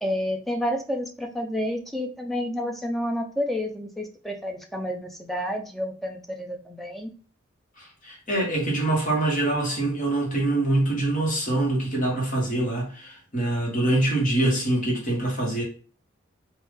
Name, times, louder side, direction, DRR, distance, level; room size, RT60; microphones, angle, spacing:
voice 1, 0.0-7.1, equal, ahead, 0.4 m, -30 dB
voice 2, 7.8-15.6, right 2 dB, 40° left, 1.3 m, -24 dB
3.5 x 2.6 x 3.4 m
head